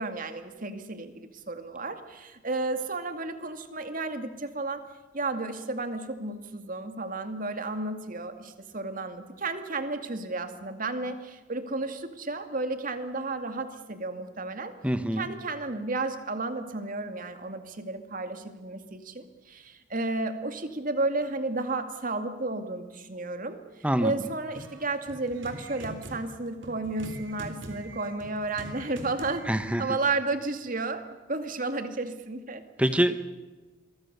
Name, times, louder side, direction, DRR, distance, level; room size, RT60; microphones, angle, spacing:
voice 1, 0.0-4.8 5.1-14.7 15.2-23.6 24.0-29.5 29.8-31.0 31.3-32.6, right 3 dB, 45° right, 8 dB, 2.3 m, -32 dB
voice 2, 14.8-15.3 23.8-24.1 29.5-30.0 32.8-33.2, right 1 dB, 5° right, 11 dB, 1.1 m, -25 dB
sound 1, 24.5-29.7, right 1 dB, 65° right, 3.6 m, -43 dB
27.0 x 23.0 x 6.8 m, 1.2 s
head